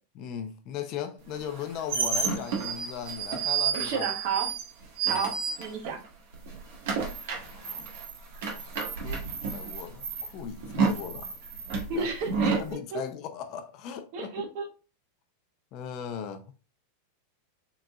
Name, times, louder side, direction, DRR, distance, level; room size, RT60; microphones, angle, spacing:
voice 1, 0.2-4.1 5.0-5.2 7.4-7.9 8.9-11.4 11.9-12.1 12.4-14.4 15.7-16.4, left 8 dB, 40° left, 0.5 m, -38 dB
sound 1, 1.4-6.1 6.3-12.7, right 5 dB, 65° right, 1.3 m, -31 dB
voice 2, 3.7-4.5 5.0-5.3 5.6-6.0 11.9-12.6 12.9-13.0 14.1-14.7, right 5 dB, 45° right, 1.0 m, -31 dB
3.9 x 3.8 x 2.3 m
supercardioid pair, 155°, 0 cm